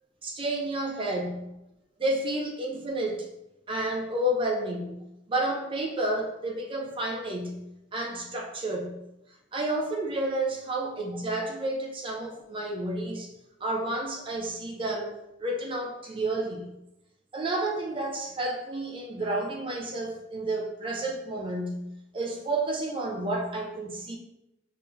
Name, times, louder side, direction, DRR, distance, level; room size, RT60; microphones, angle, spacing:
voice 1, 0.2-1.4 2.0-3.3 3.7-5.0 5.3-7.6 7.9-9.0 9.5-13.3 13.6-15.1 15.4-16.7 17.3-21.9 22.1-24.2, right 1 dB, 25° right, 1 dB, 0.5 m, -30 dB
5.4 x 3.4 x 2.7 m, 0.89 s
head